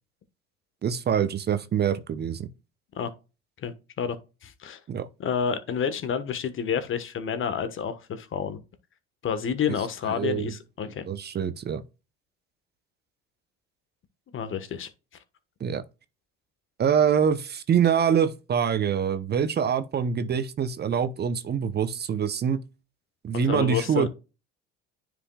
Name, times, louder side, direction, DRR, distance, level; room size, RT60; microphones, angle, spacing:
voice 1, 0.8-2.5 4.9-5.1 10.2-10.5 11.1-11.8 15.6-15.8 16.8-22.6 23.2-24.1, right 8 dB, 35° right, 0.8 m, -25 dB
voice 2, 3.6-4.2 4.4-4.8 5.2-8.6 9.2-11.1 14.3-14.9 23.3-24.1, left 7 dB, 45° left, 1.3 m, -29 dB
9.7 x 5.0 x 2.3 m
hypercardioid pair, 75°, 29 cm